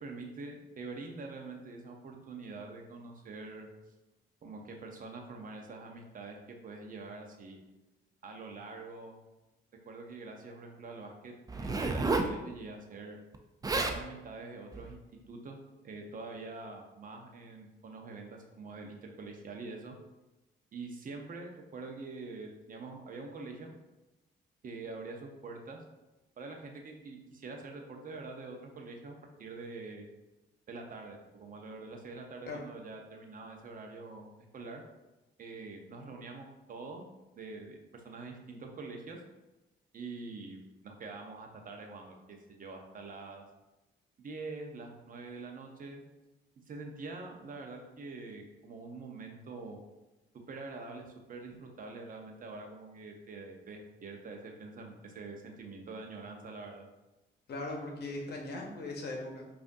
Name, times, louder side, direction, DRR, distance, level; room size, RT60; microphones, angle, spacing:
voice 1, 0.0-3.7 4.4-7.6 8.2-9.2 9.8-11.3 11.6-13.2 13.8-15.6 15.8-19.9 20.7-23.7 24.6-25.8 26.4-30.1 30.7-34.8 35.4-37.1 37.3-39.2 39.9-40.6 40.8-42.2 42.5-43.4 44.2-46.0 46.7-49.8 50.5-56.9, right 3 dB, 45° right, 2 dB, 0.7 m, -45 dB
Zipper (clothing), 11.5-12.3 13.3-13.4 13.6-14.0 14.7-14.9, right 3 dB, 20° right, 0.3 m, -31 dB
voice 2, 57.5-59.5, left 2 dB, 55° left, 0 dB, 1.0 m, -39 dB
4.9 x 2.6 x 2.6 m, 1.0 s
cardioid pair, 90°, 20 cm